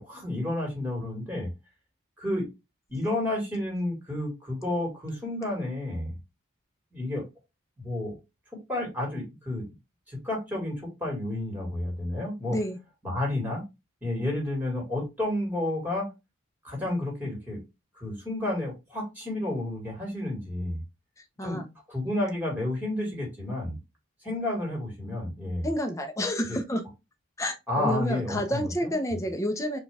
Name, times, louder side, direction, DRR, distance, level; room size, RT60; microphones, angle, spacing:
voice 1, 0.0-1.5 2.2-2.5 2.9-6.1 6.9-7.2 7.8-8.1 8.5-9.6 10.1-12.6 13.0-13.6 14.0-16.1 16.6-17.6 17.9-20.8 21.4-21.6 21.9-23.8 24.2-25.7 26.5-26.6 27.7-29.2, left 1 dB, 10° right, 1.8 m, -31 dB
voice 2, 25.6-26.8 27.4-29.8, equal, 15° left, 0.6 m, -29 dB
4.4 x 2.4 x 3.3 m
head